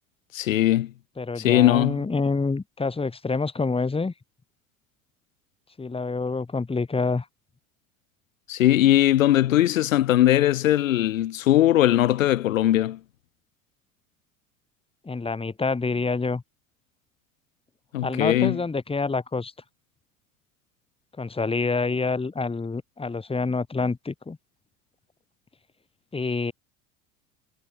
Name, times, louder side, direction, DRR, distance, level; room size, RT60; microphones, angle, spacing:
voice 1, 0.3-0.9 1.4-2.0 8.5-13.0 17.9-18.6, left 13 dB, 75° left, 1.7 m, -20 dB
voice 2, 1.2-4.1 5.8-7.3 15.0-16.4 18.0-19.5 21.2-24.4 26.1-26.5, left 4 dB, 15° left, 2.3 m, -27 dB
figure-of-eight pair, 70°, 40 cm